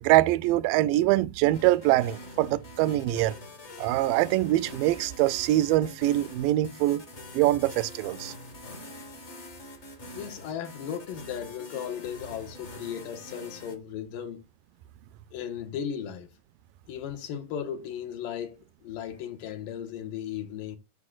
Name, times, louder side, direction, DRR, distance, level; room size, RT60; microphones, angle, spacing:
voice 1, 0.0-3.4 3.8-7.0 7.3-8.3, right 16 dB, 85° right, 2.2 m, -24 dB
sound 1, 1.5-13.8, left 1 dB, 35° left, 1.1 m, -45 dB
voice 2, 10.2-14.4 15.3-16.3 16.9-20.8, left 9 dB, 80° left, 2.9 m, -36 dB
12.5 x 5.0 x 2.4 m
omnidirectional pair, 3.9 m